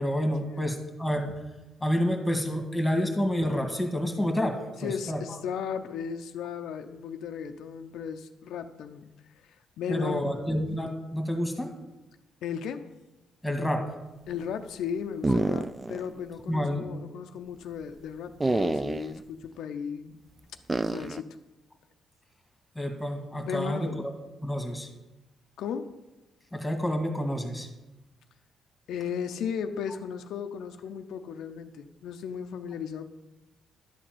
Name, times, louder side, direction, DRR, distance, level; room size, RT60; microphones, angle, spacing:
voice 1, 0.0-1.3 1.8-4.5 4.8-5.2 9.9-11.7 13.4-13.8 15.3-15.4 16.5-16.8 22.8-24.1 24.4-24.9 26.5-27.7, equal, 5° left, 4 dB, 1.8 m, -29 dB
voice 2, 4.8-9.1 9.3-10.2 12.4-13.0 14.3-20.2 20.9-21.4 23.4-24.1 25.6-26.0 28.9-33.1, left 7 dB, 80° left, 7 dB, 0.5 m, -36 dB
sound 1, 15.2-16.1 16.4-16.5 18.4-19.2 20.7-21.2, right 2 dB, 20° right, 0.3 m, -27 dB
11.0 x 4.1 x 7.7 m, 1.0 s
cardioid pair, 90°, 0 cm